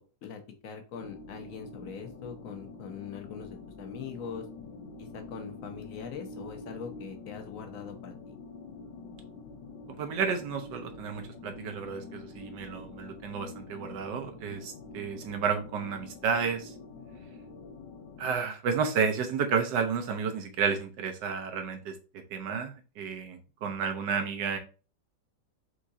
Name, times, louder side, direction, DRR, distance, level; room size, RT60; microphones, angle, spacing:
voice 1, 0.0-4.5 5.0-8.4 23.6-23.8, left 7 dB, 60° left, 5 dB, 1.0 m, -42 dB
sound 1, 1.0-18.4, left 3 dB, 85° left, 1.3 m, -46 dB
voice 2, 10.0-16.7 18.2-21.9 22.3-24.6, right 6 dB, 80° right, 5 dB, 1.4 m, -31 dB
4.7 x 3.6 x 2.7 m, 0.34 s
omnidirectional pair, 1.9 m